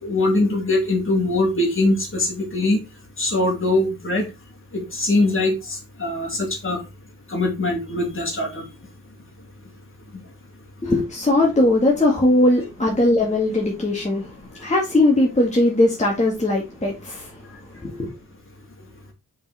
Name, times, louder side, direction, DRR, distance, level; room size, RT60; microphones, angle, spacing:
voice 1, 0.0-2.8 3.2-4.3 4.7-6.8 7.3-8.6, left 2 dB, 35° left, 3.1 m, -22 dB
voice 2, 10.8-14.2 14.6-17.3 17.8-18.1, left 1 dB, 20° left, 2.0 m, -19 dB
5.6 x 5.3 x 4.3 m
cardioid pair, 90°, 34 cm